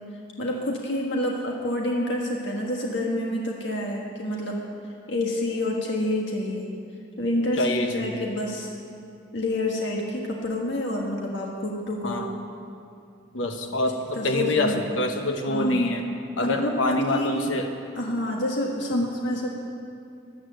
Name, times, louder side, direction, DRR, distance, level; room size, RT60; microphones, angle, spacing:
voice 1, 0.4-4.6 5.1-6.7 7.2-8.7 9.3-12.3 14.1-14.8 15.5-15.9 16.4-17.3 17.9-19.5, left 1 dB, 70° left, -1 dB, 1.6 m, -28 dB
voice 2, 7.6-8.2 12.0-12.3 13.3-16.1 16.4-17.7 18.9-19.0, left 1 dB, 90° left, 4 dB, 1.1 m, -26 dB
15.0 x 11.0 x 7.7 m, 2.4 s
head